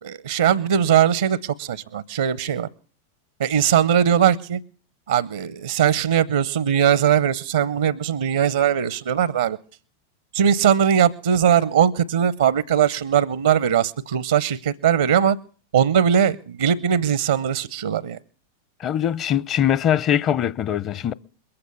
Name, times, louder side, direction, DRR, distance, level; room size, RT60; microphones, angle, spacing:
voice 1, 0.0-2.7 3.4-4.6 5.1-9.6 10.3-15.4 15.7-18.2, right 9 dB, 75° right, 0.6 m, -20 dB
voice 2, 18.8-21.1, left 10 dB, 35° left, 0.7 m, -22 dB
21.5 x 8.7 x 7.0 m
hypercardioid pair, 95°, 0 cm